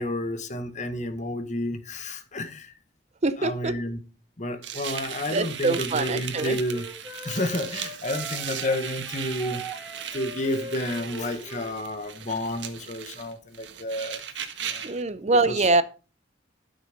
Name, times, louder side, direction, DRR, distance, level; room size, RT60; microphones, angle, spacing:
voice 1, 0.0-2.7 3.4-4.0 4.4-6.9 7.2-9.7 10.1-14.2 14.7-14.9 15.5-15.7, left 1 dB, 40° left, 1.6 m, -30 dB
voice 2, 3.2-3.8 4.8-5.0 5.3-6.6 14.8-15.8, right 3 dB, 40° right, 0.7 m, -24 dB
sound 1, 4.6-15.0, right 8 dB, 85° right, 1.5 m, -37 dB
Wind instrument woodwind instrument, 6.3-11.8, equal, ahead, 2.5 m, -40 dB
13.0 x 6.5 x 5.3 m
head